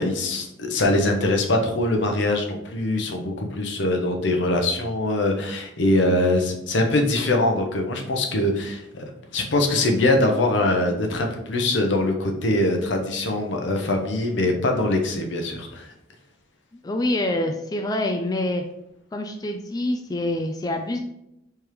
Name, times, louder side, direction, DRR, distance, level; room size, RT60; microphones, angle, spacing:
voice 1, 0.0-15.9, left 2 dB, 70° left, 3 dB, 0.8 m, -23 dB
voice 2, 16.8-18.6 19.1-21.0, left 1 dB, 20° left, 4 dB, 0.3 m, -26 dB
4.8 x 3.5 x 3.0 m, 0.82 s
head